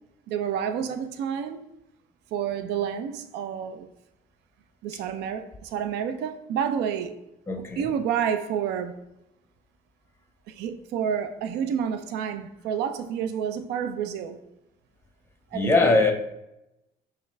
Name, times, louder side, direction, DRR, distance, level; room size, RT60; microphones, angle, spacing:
voice 1, 0.3-1.6 2.3-3.9 4.8-7.2 7.8-9.0 10.5-14.4 15.5-16.0, right 8 dB, 80° right, 0.4 m, -29 dB
voice 2, 7.5-7.9 15.5-16.1, left 3 dB, 15° left, 0.6 m, -21 dB
5.7 x 2.4 x 3.1 m
cardioid pair, 110°, 17 cm